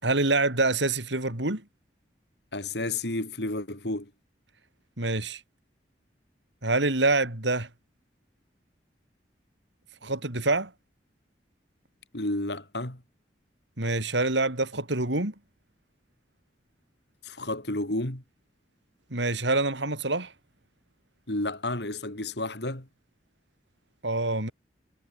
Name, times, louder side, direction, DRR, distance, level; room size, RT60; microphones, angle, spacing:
voice 1, 0.0-1.6 5.0-5.4 6.6-7.7 10.0-10.7 13.8-15.3 19.1-20.3 24.0-24.5, right 2 dB, 85° right, 4.6 m, -26 dB
voice 2, 2.5-4.1 12.1-13.0 17.2-18.2 21.3-22.9, left 2 dB, 70° left, 3.5 m, -31 dB
head